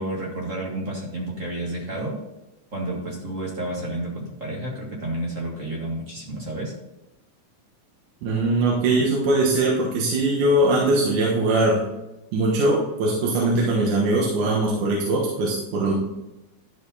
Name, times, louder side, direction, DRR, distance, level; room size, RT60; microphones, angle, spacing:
voice 1, 0.0-2.2 2.7-6.7, right 1 dB, 30° right, -2 dB, 1.7 m, -30 dB
voice 2, 8.2-11.8 12.3-15.9, right 2 dB, 75° right, -3 dB, 2.8 m, -21 dB
12.0 x 5.1 x 4.1 m, 0.97 s
omnidirectional pair, 3.6 m